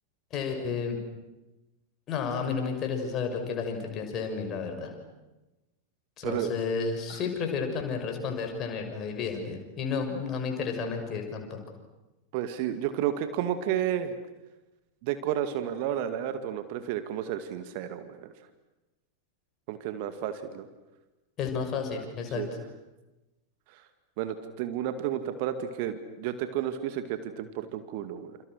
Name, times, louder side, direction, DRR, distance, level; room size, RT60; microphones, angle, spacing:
voice 1, 0.3-1.0 2.1-4.9 6.2-11.6 21.4-22.4, left 5 dB, 30° left, 4 dB, 6.5 m, -32 dB
voice 2, 12.3-14.1 15.0-18.3 19.7-20.7 22.4-22.5 23.7-23.8 24.2-28.4, right 10 dB, 45° right, 9 dB, 2.1 m, -31 dB
29.0 x 28.5 x 6.6 m, 1.0 s
figure-of-eight pair, 90°, 0 cm